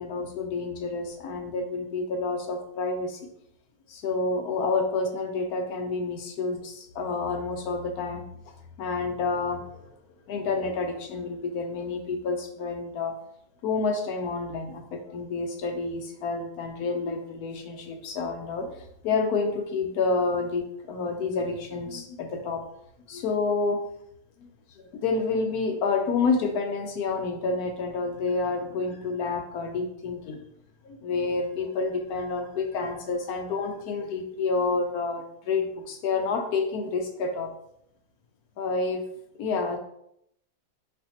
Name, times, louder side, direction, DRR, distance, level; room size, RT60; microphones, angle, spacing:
voice 1, 0.0-3.2 3.9-8.2 8.8-9.9 10.3-13.2 13.6-22.7 23.1-23.8 24.4-24.5 24.7-30.4 30.8-37.5 38.6-39.0 39.4-39.8, left 4 dB, 70° left, 4 dB, 1.0 m, -29 dB
4.3 x 4.2 x 2.8 m, 0.75 s
omnidirectional pair, 1.8 m